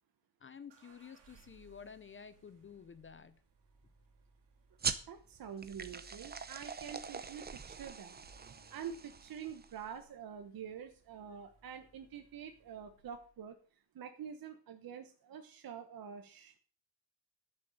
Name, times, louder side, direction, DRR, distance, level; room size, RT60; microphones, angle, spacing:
voice 1, 0.4-3.4, left 6 dB, 30° left, 13 dB, 0.6 m, -52 dB
sound 1, 0.7-13.5, right 4 dB, 85° right, 2.8 m, -64 dB
sound 2, 4.8-9.9, right 5 dB, 25° right, 0.7 m, -42 dB
voice 2, 5.1-8.2 8.7-13.6 13.9-16.5, right 7 dB, 55° right, 7 dB, 1.1 m, -47 dB
12.0 x 6.9 x 6.5 m, 0.40 s
wide cardioid pair, 175°, 41 cm